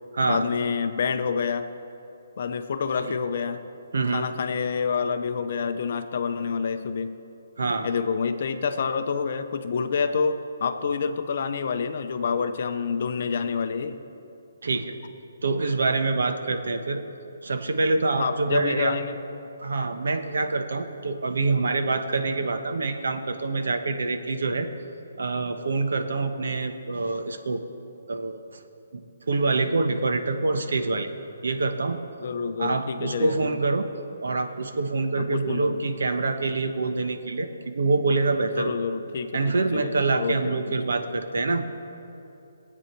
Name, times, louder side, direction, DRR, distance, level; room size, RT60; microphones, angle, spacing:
voice 1, 0.3-1.7 2.4-3.6 4.1-7.2 7.8-14.0 18.2-19.2 32.2-33.6 35.2-35.8 38.5-40.6, left 5 dB, 35° left, 9 dB, 0.6 m, -28 dB
voice 2, 3.9-4.3 7.6-7.9 14.6-14.9 15.4-17.0 17.4-18.9 19.6-24.7 25.2-27.6 28.1-28.4 28.9-29.0 29.3-31.1 31.4-32.0 32.6-33.9 34.2-37.5 37.7-38.7 39.3-41.7, right 3 dB, 75° right, 7 dB, 1.1 m, -25 dB
19.0 x 8.6 x 4.6 m, 2.8 s
hypercardioid pair, 180°, 0 cm